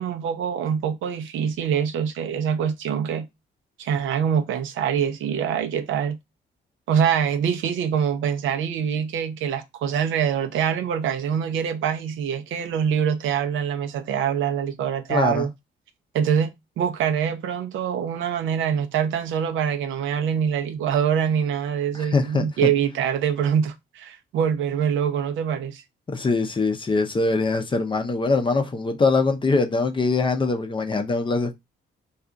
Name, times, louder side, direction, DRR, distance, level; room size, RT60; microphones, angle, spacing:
voice 1, 0.0-3.3 3.8-6.2 6.9-15.5 16.1-25.8, right 8 dB, 75° right, 0.6 m, -24 dB
voice 2, 15.1-15.5 21.9-22.7 26.1-31.5, left 3 dB, 25° left, 0.5 m, -23 dB
2.4 x 2.3 x 3.7 m
cardioid pair, 90°, 20 cm